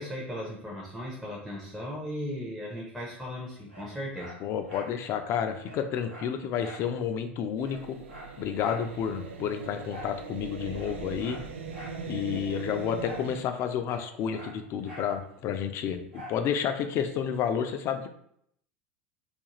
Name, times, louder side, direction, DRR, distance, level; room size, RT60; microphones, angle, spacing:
voice 1, 0.0-4.3, equal, 5° right, -4 dB, 0.6 m, -37 dB
Dog, 3.7-5.0 5.3-5.4 5.6-6.9 7.2-7.3 7.6-8.9 9.9-10.2 10.7-12.0 13.0-13.3 13.6-15.1 16.1-16.4 16.9-17.0, equal, 85° right, 1.1 m, -45 dB
voice 2, 4.4-8.0 8.4-11.4 12.1-18.1, left 8 dB, 40° left, 7 dB, 0.4 m, -30 dB
sound 1, 7.6-13.4, right 5 dB, 65° right, 0.4 m, -40 dB
2.4 x 2.3 x 2.9 m, 0.70 s
figure-of-eight pair, 80°, 7 cm